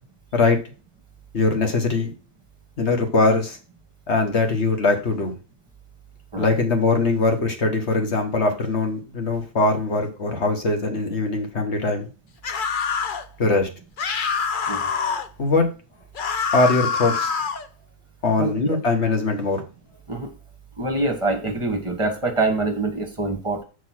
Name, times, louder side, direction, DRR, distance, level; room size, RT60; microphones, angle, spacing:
voice 1, 1.3-2.1 2.8-3.6 4.1-5.4 6.4-12.1 13.4-13.7 15.4-15.7 16.5-17.3 18.2-19.6, left 3 dB, 40° left, 4 dB, 1.6 m, -21 dB
sound 1, 12.4-13.2 14.0-15.3 16.2-17.7, left 6 dB, 65° left, 0.5 m, -25 dB
voice 2, 18.4-18.8 20.1-20.3 20.8-23.6, right 2 dB, 20° right, 3 dB, 1.6 m, -25 dB
6.6 x 5.0 x 6.1 m, 0.34 s
omnidirectional pair, 1.8 m